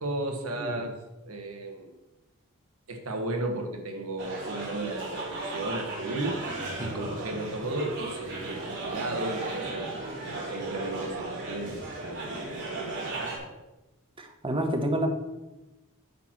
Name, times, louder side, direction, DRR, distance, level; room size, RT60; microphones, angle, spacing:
voice 1, 0.0-1.9 2.9-6.5 6.8-9.9 10.5-13.3, right 2 dB, 70° right, 3 dB, 1.4 m, -35 dB
sound 1, 4.2-13.4, right 2 dB, 55° right, 2.9 m, -35 dB
voice 2, 14.2-15.1, right 1 dB, 25° right, 4 dB, 1.0 m, -29 dB
9.3 x 4.5 x 6.0 m, 1.0 s
head